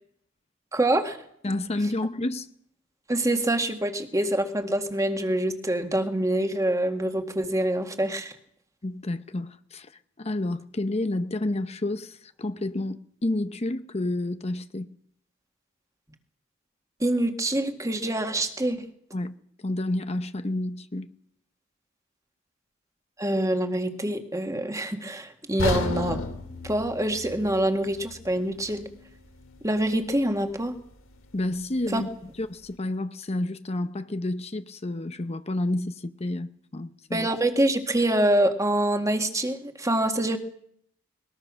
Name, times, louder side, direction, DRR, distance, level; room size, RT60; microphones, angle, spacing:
voice 1, 0.7-1.2 3.1-8.3 17.0-18.9 23.2-26.2 26.6-28.9 29.6-30.7 31.9-32.0 37.1-40.4, right 1 dB, 15° right, 1.9 m, -25 dB
voice 2, 1.4-2.5 8.8-9.9 10.2-14.9 19.1-19.3 19.6-21.1 31.3-32.1 32.4-37.3, left 1 dB, 30° left, 0.8 m, -30 dB
sound 1, 25.6-29.7 30.0-30.2 30.8-30.9, left 2 dB, 80° left, 2.7 m, -33 dB
21.0 x 21.0 x 6.3 m
head